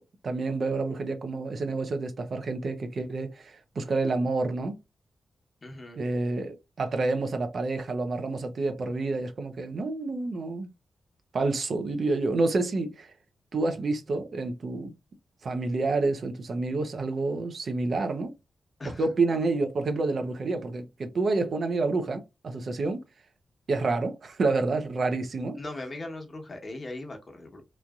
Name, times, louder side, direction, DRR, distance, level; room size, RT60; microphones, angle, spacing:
voice 1, 0.2-4.8 6.0-10.7 11.3-13.1 13.5-14.9 15.4-18.3 19.0-23.0 23.7-25.6, right 3 dB, 60° right, 0.7 m, -28 dB
voice 2, 5.6-6.0 18.8-19.1 25.6-27.6, left 2 dB, 40° left, 1.0 m, -39 dB
3.1 x 2.6 x 2.3 m
cardioid pair, 55°, 0 cm